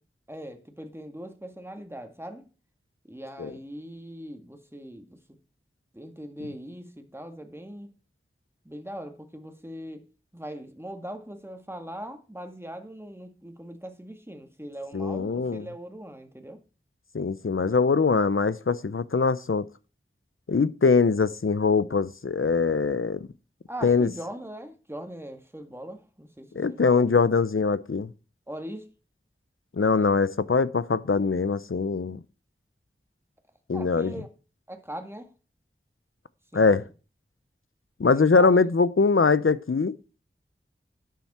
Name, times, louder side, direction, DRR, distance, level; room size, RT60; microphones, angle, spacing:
voice 1, 0.3-2.5 3.0-5.2 5.9-7.9 8.6-10.1 10.3-16.6 23.7-27.1 28.5-28.9 33.7-34.3 34.7-35.3 36.5-36.9 38.1-38.5, right 1 dB, 10° right, 2.1 m, -40 dB
voice 2, 14.9-15.7 17.1-19.7 20.5-23.3 23.8-24.1 26.6-28.1 29.7-32.2 33.7-34.1 36.5-36.8 38.0-40.0, left 4 dB, 75° left, 0.7 m, -22 dB
12.0 x 9.4 x 4.4 m
wide cardioid pair, 40°, 21 cm